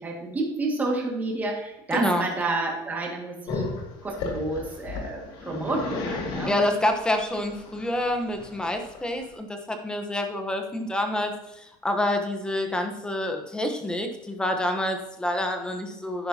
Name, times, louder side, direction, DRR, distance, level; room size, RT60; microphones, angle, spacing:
voice 1, 0.0-3.7 4.0-6.6, right 2 dB, 15° right, -1 dB, 2.0 m, -30 dB
voice 2, 1.9-2.3 6.5-16.3, left 1 dB, 10° left, 5 dB, 1.0 m, -27 dB
Growling, 3.5-9.3, left 3 dB, 60° left, 2.4 m, -34 dB
10.5 x 10.0 x 2.9 m, 0.87 s
cardioid pair, 145°, 10 cm